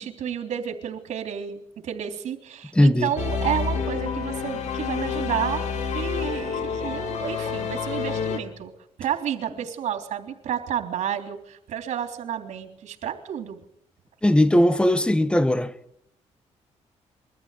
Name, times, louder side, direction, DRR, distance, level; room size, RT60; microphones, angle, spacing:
voice 1, 0.0-5.6 5.9-8.7 9.0-13.6, right 9 dB, 75° right, 3.5 m, -31 dB
voice 2, 2.7-3.1 14.2-15.7, left 1 dB, 10° left, 1.2 m, -18 dB
sound 1, 3.2-8.4, left 6 dB, 75° left, 3.0 m, -28 dB
23.5 x 14.0 x 9.3 m
cardioid pair, 100°, 12 cm